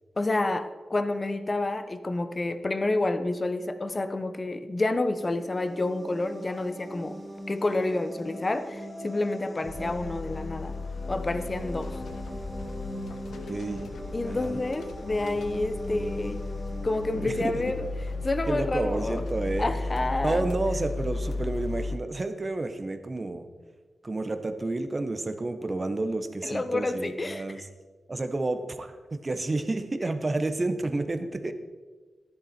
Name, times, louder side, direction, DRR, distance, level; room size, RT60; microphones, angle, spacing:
voice 1, 0.2-7.2 7.5-10.7 11.1-12.0 14.1-16.5 16.8-17.9 18.2-19.2 19.6-20.5 26.4-27.4, left 2 dB, 30° left, 10 dB, 0.9 m, -29 dB
sound 1, 5.1-18.7, equal, 5° left, 1.9 m, -41 dB
sound 2, 9.7-22.0, left 3 dB, 85° left, 1.0 m, -35 dB
voice 2, 13.5-13.8 14.2-14.6 17.1-17.6 18.5-19.7 20.2-23.5 24.0-27.7 28.1-31.5, right 2 dB, 30° right, 9 dB, 1.1 m, -30 dB
14.0 x 11.0 x 4.4 m, 1.4 s
cardioid pair, 90°, 0 cm